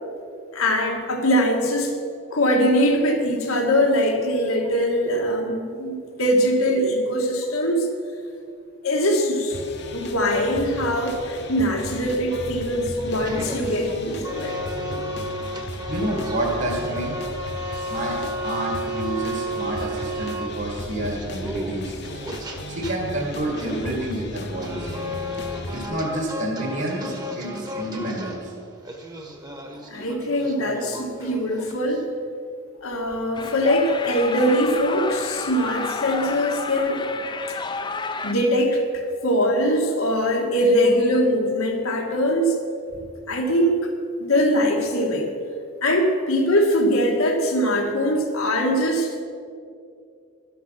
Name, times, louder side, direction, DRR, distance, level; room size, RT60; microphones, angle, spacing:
voice 1, 0.5-1.9 2.3-7.9 8.8-9.6 9.9-14.6 29.9-32.1 32.8-37.1 38.2-42.6 43.3-43.9 44.2-45.3 45.8-49.1, equal, 90° left, 2 dB, 2.1 m, -22 dB
sound 1, 9.5-25.9, left 1 dB, 55° left, 1.0 m, -36 dB
sound 2, 13.1-32.0, equal, 20° right, 1.1 m, -33 dB
voice 2, 15.9-17.2 17.9-18.2 18.4-22.2 22.7-24.9 25.7-28.5, right 1 dB, 60° right, -1 dB, 2.1 m, -29 dB
sound 3, 33.3-38.3, left 4 dB, 20° left, 0.5 m, -31 dB
12.5 x 11.5 x 5.9 m, 2.4 s
head